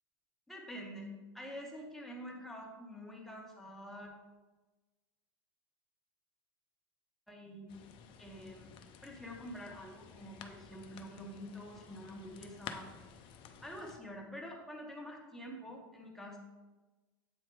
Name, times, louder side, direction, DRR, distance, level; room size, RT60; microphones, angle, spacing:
voice 1, 0.5-4.1 7.3-7.7 8.2-8.7 9.0-12.8 13.6-16.4, equal, 5° left, -2 dB, 1.5 m, -47 dB
sound 1, 7.7-14.0, left 7 dB, 45° left, 0.6 m, -52 dB
8.2 x 2.9 x 4.7 m, 1.2 s
hypercardioid pair, 90°, 12 cm